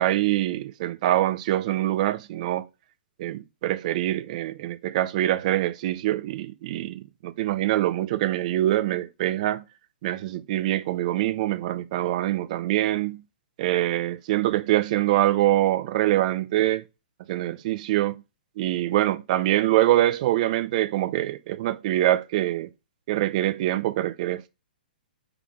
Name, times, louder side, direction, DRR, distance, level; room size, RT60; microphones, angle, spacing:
voice 1, 0.0-2.7 3.2-9.6 10.0-13.2 13.6-16.8 17.3-18.2 18.6-22.7 23.1-24.5, right 14 dB, 50° right, 0.6 m, -24 dB
4.9 x 3.8 x 4.9 m
hypercardioid pair, 135°, 5 cm